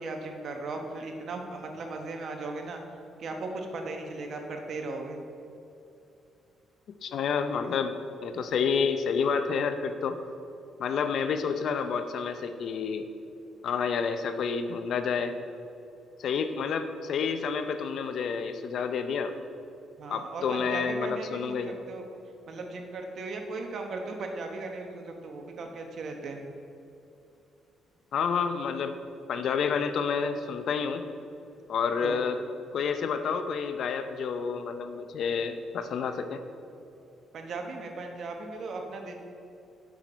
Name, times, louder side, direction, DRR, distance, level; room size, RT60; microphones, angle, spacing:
voice 1, 0.0-2.8 3.2-5.2 20.0-22.0 22.5-26.4 32.0-32.2 37.3-39.1, right 3 dB, 60° right, 3 dB, 1.1 m, -37 dB
voice 2, 7.0-10.2 10.8-13.0 13.6-15.3 16.2-19.3 20.1-21.7 28.1-29.0 29.3-31.0 31.7-32.4 32.7-36.4, left 6 dB, 65° left, 9 dB, 0.6 m, -29 dB
7.4 x 6.0 x 5.1 m, 2.7 s
cardioid pair, 90°, 0 cm